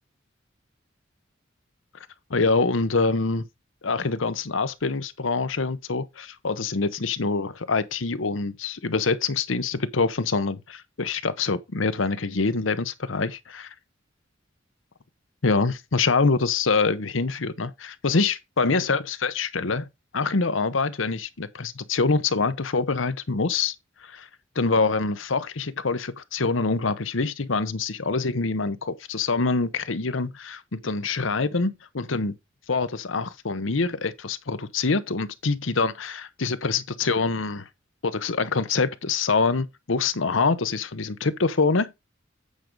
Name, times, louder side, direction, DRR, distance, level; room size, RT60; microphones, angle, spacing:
voice 1, 2.3-3.4 3.8-13.7 15.4-19.9 20.1-23.7 24.0-24.3 24.6-32.3 32.7-37.6 38.0-41.9, left 4 dB, 80° left, 0.9 m, -25 dB
8.5 x 5.2 x 4.8 m
head